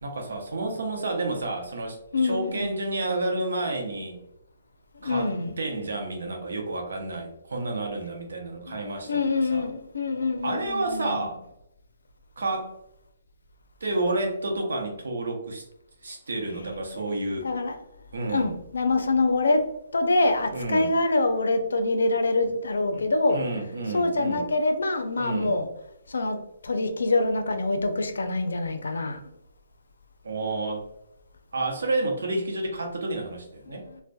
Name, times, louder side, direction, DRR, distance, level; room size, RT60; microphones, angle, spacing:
voice 1, 0.0-4.2 5.0-9.2 9.5-9.7 10.4-11.4 12.4-12.7 13.8-15.6 16.0-17.5 18.1-18.5 20.5-20.9 22.9-23.0 23.3-24.4 25.2-25.5 30.2-30.8 31.5-33.8, right 2 dB, 85° right, 2 dB, 0.7 m, -30 dB
voice 2, 2.1-2.7 4.9-5.5 8.7-11.2 17.3-17.8 18.3-19.6 19.9-23.4 23.9-25.7 26.1-26.4 26.6-29.2 33.7-34.0, left 2 dB, 85° left, 6 dB, 0.4 m, -25 dB
2.6 x 2.1 x 2.2 m, 0.79 s
hypercardioid pair, 160°, 0 cm